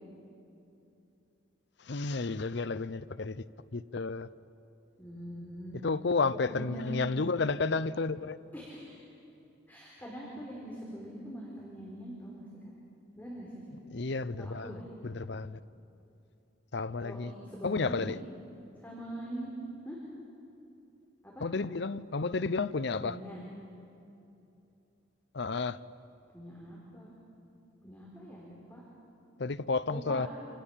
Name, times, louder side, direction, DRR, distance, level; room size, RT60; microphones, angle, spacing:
voice 1, 1.9-3.4 3.7-4.3 5.8-8.4 13.9-14.7 15.0-15.6 16.7-17.3 17.6-18.2 21.4-23.2 25.3-25.8 29.4-30.3, left 4 dB, 60° left, 0.7 m, -31 dB
voice 2, 5.0-5.8 6.2-7.0 8.5-9.0 9.7-12.7 13.2-13.5 14.4-14.9 17.0-18.1 18.8-19.5 19.8-20.0 21.2-21.5 23.0-23.4 26.3-27.1 27.8-28.8 29.9-30.3, equal, 10° left, 4.6 m, -43 dB
29.5 x 27.5 x 7.3 m
head